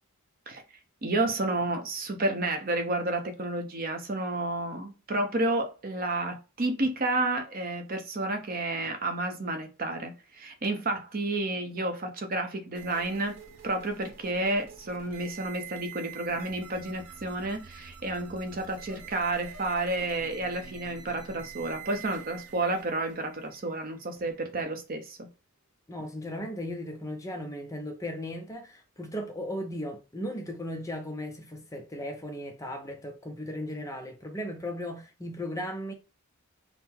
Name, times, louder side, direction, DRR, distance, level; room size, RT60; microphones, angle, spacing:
voice 1, 1.0-13.3 13.6-25.3, right 2 dB, 40° right, 0.6 m, -31 dB
sound 1, 12.7-24.6, right 6 dB, 85° right, 0.8 m, -47 dB
voice 2, 25.9-35.9, left 1 dB, 15° left, 0.5 m, -36 dB
3.7 x 2.0 x 4.2 m
head